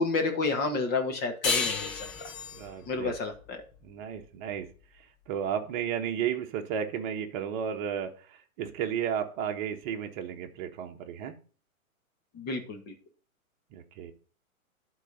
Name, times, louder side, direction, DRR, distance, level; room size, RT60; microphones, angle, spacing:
voice 1, 0.0-2.1 2.9-3.6 12.3-12.9, left 3 dB, 20° left, 5 dB, 1.6 m, -30 dB
sound 1, 1.4-4.6, left 4 dB, 40° left, 2.0 m, -33 dB
voice 2, 2.5-3.1 3.8-4.7 5.3-11.3 13.7-14.1, right 8 dB, 30° right, 4 dB, 1.3 m, -33 dB
11.5 x 4.1 x 5.2 m, 0.40 s
hypercardioid pair, 135°, 43 cm